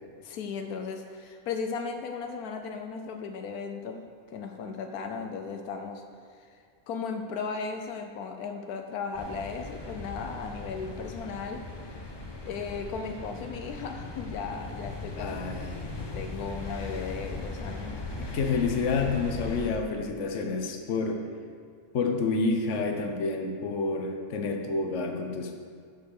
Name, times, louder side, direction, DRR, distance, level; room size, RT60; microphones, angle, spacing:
voice 1, 0.2-4.0 4.3-6.0 6.9-11.6 12.4-15.4 15.7-18.0, left 5 dB, 85° left, 5 dB, 1.2 m, -36 dB
sound 1, 9.1-19.7, left 2 dB, 25° left, 0.7 m, -39 dB
voice 2, 15.2-15.9 18.2-21.2 21.9-25.6, left 4 dB, 60° left, 3 dB, 1.2 m, -29 dB
8.1 x 6.7 x 6.5 m, 2.1 s
omnidirectional pair, 1.5 m